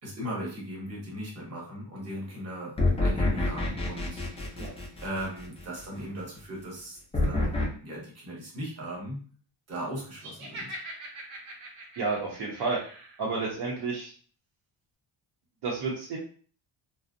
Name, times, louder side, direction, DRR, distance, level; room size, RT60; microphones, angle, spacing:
voice 1, 0.0-2.7 3.0-4.6 5.0-7.0 7.2-9.2 9.7-10.8, equal, 35° right, -3 dB, 0.9 m, -38 dB
sound 1, 2.8-5.6 7.1-7.6, left 2 dB, 15° left, 0.3 m, -27 dB
Laughter, 10.2-13.2, right 1 dB, 90° right, 0.8 m, -42 dB
voice 2, 12.0-12.8 13.2-14.1 15.6-16.2, right 4 dB, 60° right, -3 dB, 0.6 m, -30 dB
2.5 x 2.0 x 2.5 m, 0.44 s
cardioid pair, 175°, 45 cm